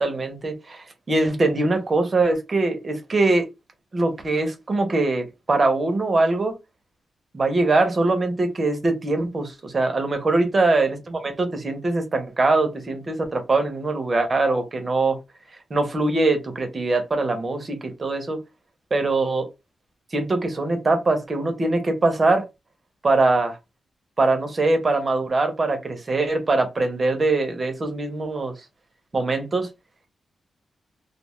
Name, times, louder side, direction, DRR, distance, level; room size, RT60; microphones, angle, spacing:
voice 1, 0.0-3.5 3.9-6.5 7.3-15.2 15.7-18.4 18.9-19.5 20.1-22.5 23.0-23.6 24.2-28.5 29.1-29.7, right 2 dB, 30° right, 0.7 m, -22 dB
2.3 x 2.3 x 3.0 m
wide cardioid pair, 160°, 0 cm